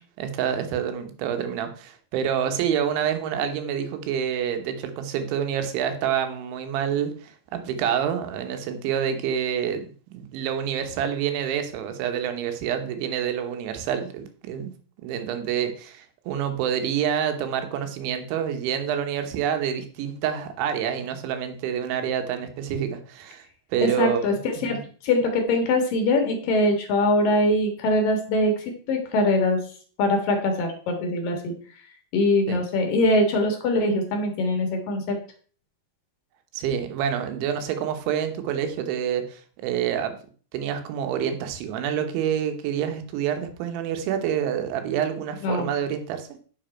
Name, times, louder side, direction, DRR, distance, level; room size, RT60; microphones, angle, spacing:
voice 1, 0.2-9.9 10.1-14.7 15.0-23.5 23.7-24.4 24.7-24.8 32.5-32.6 36.5-40.1 40.5-46.3, right 8 dB, 85° right, 7 dB, 3.5 m, -27 dB
voice 2, 23.8-29.6 30.0-31.5 32.1-35.2 45.4-45.7, left 2 dB, 60° left, 4 dB, 2.8 m, -23 dB
10.0 x 6.7 x 4.4 m, 0.42 s
omnidirectional pair, 5.3 m